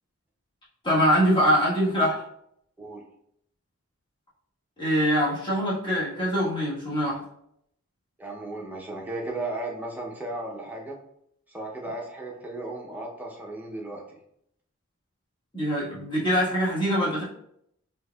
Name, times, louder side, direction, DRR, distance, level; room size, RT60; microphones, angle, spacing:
voice 1, 0.8-2.2 4.8-7.2 15.5-17.2, equal, 25° left, -7 dB, 1.2 m, -23 dB
voice 2, 8.2-11.0 11.5-14.2, right 2 dB, 10° right, -1 dB, 0.6 m, -35 dB
4.4 x 2.8 x 2.2 m, 0.73 s
head